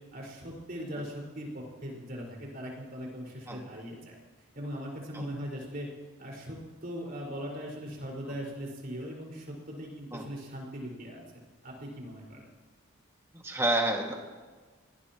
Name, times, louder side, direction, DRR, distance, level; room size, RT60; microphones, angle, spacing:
voice 1, 0.1-4.1 4.5-5.9 6.2-11.2 11.6-12.5, equal, 45° right, -2 dB, 5.1 m, -40 dB
voice 2, 13.4-14.1, right 1 dB, 15° right, 0 dB, 2.0 m, -28 dB
24.0 x 18.5 x 3.0 m, 1.4 s
head